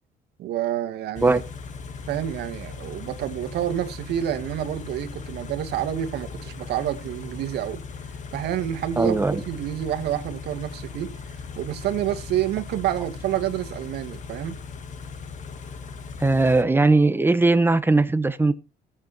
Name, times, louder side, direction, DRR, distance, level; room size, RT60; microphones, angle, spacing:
voice 1, 0.4-1.4 2.1-7.8 8.3-11.1 11.6-14.6, right 11 dB, 75° right, 2.1 m, -28 dB
Car / Idling, 1.1-16.6, left 5 dB, 45° left, 2.1 m, -38 dB
voice 2, 9.0-9.4 16.2-18.5, right 3 dB, 10° right, 1.4 m, -19 dB
16.5 x 8.8 x 4.4 m
cardioid pair, 110°, 17 cm